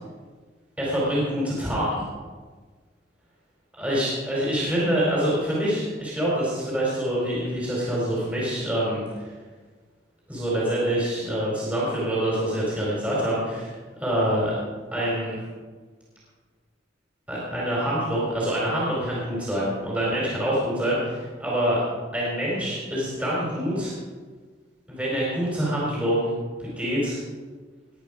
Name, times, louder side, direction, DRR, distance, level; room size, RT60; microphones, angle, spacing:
voice 1, 0.8-2.0 3.8-9.3 10.3-13.7 14.0-14.5 14.9-15.4 17.3-21.8 22.1-23.9 24.9-26.3 26.6-27.2, equal, 10° right, -7 dB, 4.5 m, -26 dB
20.0 x 9.3 x 5.1 m, 1.4 s
head